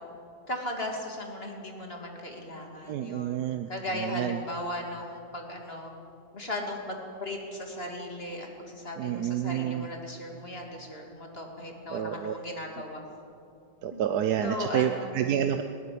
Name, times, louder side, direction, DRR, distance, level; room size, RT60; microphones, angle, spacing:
voice 1, 0.5-5.9 6.3-13.0 13.9-14.0 14.4-15.1, left 1 dB, 30° left, 1 dB, 2.9 m, -37 dB
voice 2, 2.9-3.7 4.0-4.4 9.0-9.9 11.9-12.3 13.8-15.6, right 9 dB, 65° right, 8 dB, 1.2 m, -29 dB
20.5 x 18.0 x 8.6 m, 2.7 s
omnidirectional pair, 2.0 m